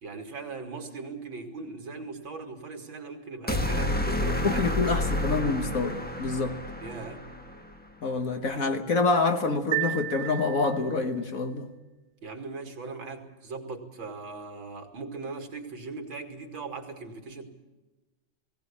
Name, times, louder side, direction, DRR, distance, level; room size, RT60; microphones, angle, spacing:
voice 1, 0.0-4.9 6.8-7.3 12.2-17.4, right 4 dB, 80° right, 3.0 m, -39 dB
sound 1, 3.5-7.7, left 1 dB, 5° left, 1.0 m, -30 dB
voice 2, 4.4-6.6 8.0-11.7, left 3 dB, 50° left, 1.5 m, -27 dB
sound 2, 9.7-11.2, right 15 dB, 55° right, 1.2 m, -32 dB
18.0 x 18.0 x 8.6 m
omnidirectional pair, 2.1 m